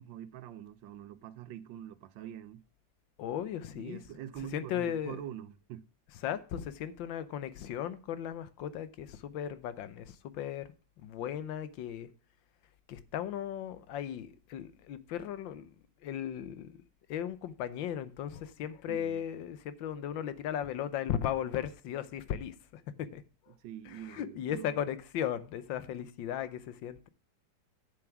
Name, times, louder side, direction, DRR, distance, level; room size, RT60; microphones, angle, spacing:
voice 1, 0.0-2.6 3.7-5.9 18.9-19.2 23.5-24.8, right 11 dB, 85° right, 1.4 m, -45 dB
voice 2, 3.2-4.0 4.5-5.2 6.2-10.7 11.0-12.1 12.9-15.7 16.0-16.8 17.1-23.2 23.9-27.1, left 10 dB, 90° left, 1.5 m, -36 dB
8.3 x 7.1 x 5.9 m
omnidirectional pair, 2.0 m